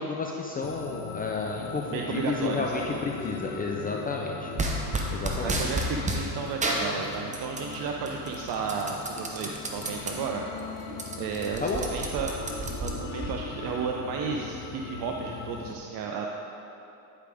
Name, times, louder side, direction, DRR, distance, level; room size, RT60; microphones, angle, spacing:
voice 1, 0.0-4.5 5.1-5.6 11.6-11.8, left 4 dB, 20° left, -1 dB, 0.4 m, -31 dB
sound 1, 0.6-15.8, left 5 dB, 75° left, 0.8 m, -40 dB
voice 2, 1.9-2.8 5.4-10.5 10.9-12.3 12.8-16.3, right 5 dB, 50° right, 1 dB, 0.6 m, -33 dB
sound 2, 4.6-6.2 6.6-7.7 8.1-10.1 10.6-10.7 10.9-13.3, right 2 dB, 15° right, 0.7 m, -31 dB
9.4 x 4.9 x 3.4 m, 2.8 s
supercardioid pair, 105°, 47 cm